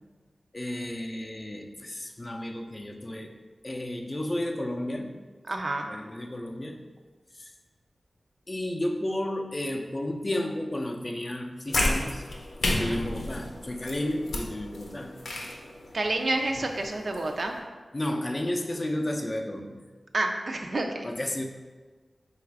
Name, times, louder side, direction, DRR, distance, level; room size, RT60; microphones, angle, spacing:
voice 1, 0.5-3.4 3.6-5.2 5.9-6.9 7.4-7.5 8.5-12.2 12.7-15.2 17.9-19.8 21.0-21.4, left 1 dB, 35° left, 3 dB, 0.4 m, -32 dB
voice 2, 5.5-5.9 12.6-13.0 15.9-17.5 20.1-21.1, right 2 dB, 60° right, 3 dB, 0.4 m, -29 dB
sound 1, 11.7-17.6, left 1 dB, 85° left, 0.6 m, -32 dB
3.9 x 2.4 x 4.5 m, 1.4 s
cardioid pair, 55°, 0 cm